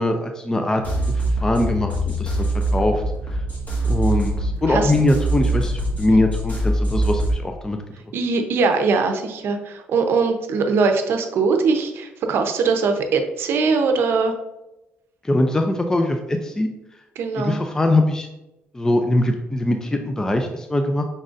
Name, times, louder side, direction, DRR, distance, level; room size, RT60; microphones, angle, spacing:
voice 1, 0.0-2.4 2.7-3.0 3.9-7.8 15.2-16.7 17.4-18.3 18.7-21.0, left 1 dB, 15° left, 4 dB, 0.4 m, -22 dB
sound 1, 0.8-7.4, right 1 dB, 45° left, 1.5 m, -23 dB
voice 2, 8.1-14.3 17.2-17.6, right 4 dB, 70° right, 5 dB, 0.6 m, -21 dB
5.3 x 3.8 x 2.5 m, 0.96 s
cardioid pair, 100°, 4 cm